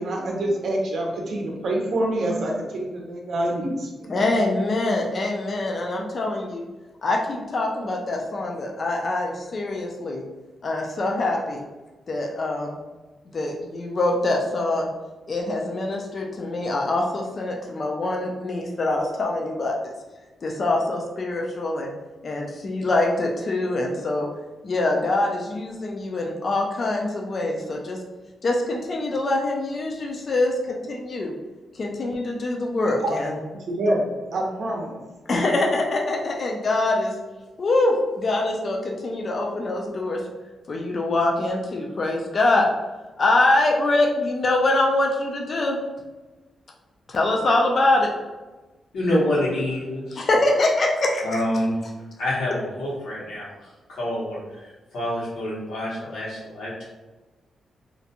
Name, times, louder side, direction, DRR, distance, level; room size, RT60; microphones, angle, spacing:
voice 1, 0.0-4.1 32.9-33.1 33.7-34.0 34.2-35.0, right 1 dB, 60° right, -1 dB, 0.6 m, -26 dB
voice 2, 4.1-6.6 7.0-10.2 10.6-11.6 12.1-12.7 13.3-14.9 15.3-19.9 20.4-21.9 22.2-24.3 24.6-28.0 28.4-31.3 31.7-33.4 35.3-37.2 37.6-40.2 40.7-42.7 43.2-45.8 47.1-48.1 50.2-51.5, left 2 dB, 40° left, 0 dB, 0.3 m, -24 dB
voice 3, 48.9-50.3 51.2-51.9 52.2-56.9, left 1 dB, 85° left, -6 dB, 1.0 m, -27 dB
2.5 x 2.1 x 2.8 m, 1.2 s
wide cardioid pair, 140°, 0 cm